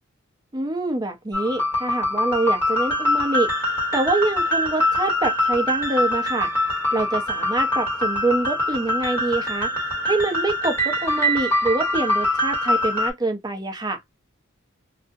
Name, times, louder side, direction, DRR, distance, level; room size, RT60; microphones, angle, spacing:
voice 1, 0.5-3.5 3.9-6.5 6.9-9.7 10.0-14.0, right 2 dB, 20° right, 0.6 m, -25 dB
sound 1, 1.3-13.1, left 1 dB, 10° left, 1.3 m, -23 dB
2.3 x 2.1 x 2.6 m
head